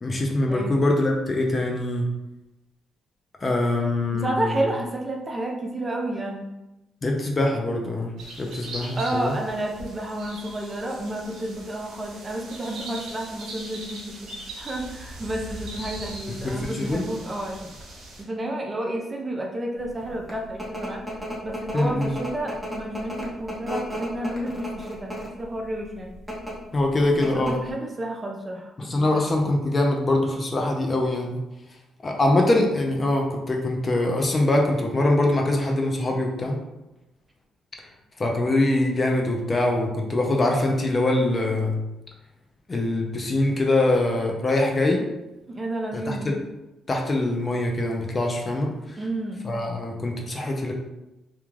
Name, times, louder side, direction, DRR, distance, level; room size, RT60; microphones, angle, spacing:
voice 1, 0.0-2.1 3.4-4.6 7.0-9.3 16.4-17.0 21.7-22.1 26.7-27.6 28.8-31.4 32.0-36.6 38.2-41.8 42.7-45.1 45.9-46.3 46.9-48.7 49.4-50.7, left 2 dB, 30° left, 1 dB, 0.5 m, -23 dB
voice 2, 4.1-6.6 8.8-17.7 18.2-21.1 21.4-26.2 27.2-29.3 45.5-46.3 49.0-49.5, right 1 dB, 25° right, 1 dB, 0.5 m, -31 dB
sound 1, 8.2-18.2, right 1 dB, 80° right, 0.7 m, -40 dB
sound 2, 20.0-25.4 26.1-26.5 26.9-27.0 27.2-27.7, equal, 5° right, 0.8 m, -33 dB
2.3 x 2.2 x 3.1 m, 0.96 s
cardioid pair, 90°, 0 cm